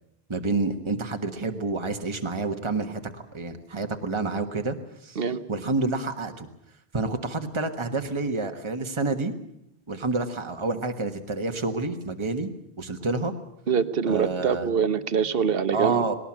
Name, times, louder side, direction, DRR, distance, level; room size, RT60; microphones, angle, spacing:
voice 1, 0.3-4.8 5.0-5.2 5.5-6.5 6.9-9.3 9.9-12.5 12.8-13.3 14.1-14.7 15.7-16.2, right 3 dB, 25° right, 5 dB, 1.5 m, -28 dB
voice 2, 13.7-16.0, right 6 dB, 60° right, 12 dB, 1.2 m, -24 dB
19.5 x 18.5 x 8.7 m, 0.77 s
omnidirectional pair, 1.1 m